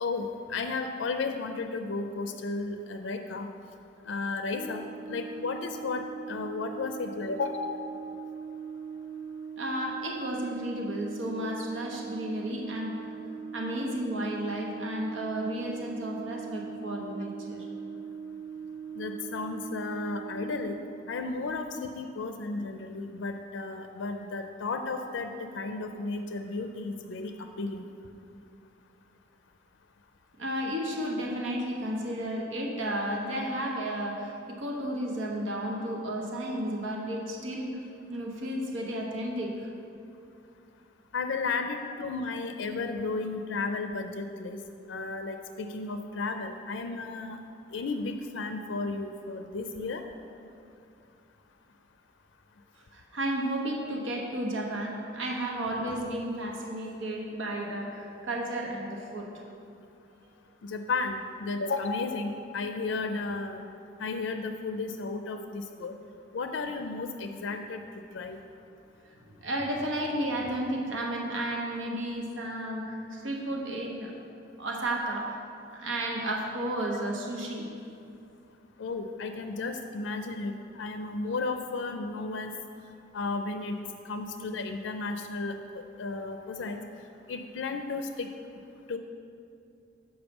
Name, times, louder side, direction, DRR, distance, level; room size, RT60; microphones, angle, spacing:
voice 1, 0.0-3.5 4.1-7.7 19.0-20.8 21.1-27.9 41.1-44.6 44.9-47.4 47.7-50.0 60.6-63.7 64.0-66.0 66.3-67.8 68.1-68.4 78.8-82.5 83.1-83.8 84.1-86.8 87.3-88.3 88.9-89.0, left 3 dB, 75° left, 5 dB, 0.4 m, -33 dB
Brass instrument, 4.5-20.9, right 6 dB, 15° right, 0.5 m, -41 dB
voice 2, 9.6-12.9 13.5-17.7 30.4-37.7 38.1-39.7 52.7-59.4 69.0-74.1 74.6-75.4 75.7-77.7, right 1 dB, 85° right, 0 dB, 1.0 m, -33 dB
7.0 x 5.3 x 5.3 m, 2.5 s
head